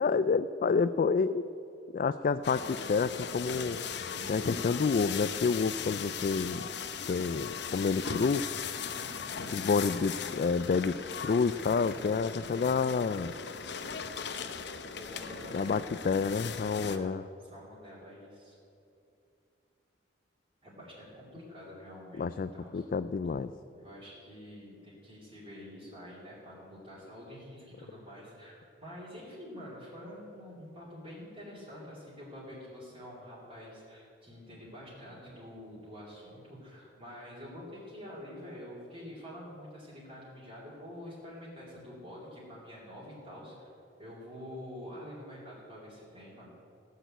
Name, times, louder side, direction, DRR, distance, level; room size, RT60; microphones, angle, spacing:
voice 1, 0.0-1.5 1.9-3.8 4.3-6.6 7.1-8.4 9.5-10.9 11.2-13.3 15.5-17.2 22.2-23.5, left 5 dB, 45° left, 12 dB, 0.3 m, -29 dB
sound 1, 2.4-17.0, left 6 dB, 65° left, 0.8 m, -38 dB
voice 2, 8.9-9.3 14.9-15.8 16.6-18.6 20.6-22.8 23.8-43.7 44.0-46.5, equal, 30° right, -7 dB, 3.5 m, -47 dB
16.5 x 6.8 x 9.1 m, 2.7 s
head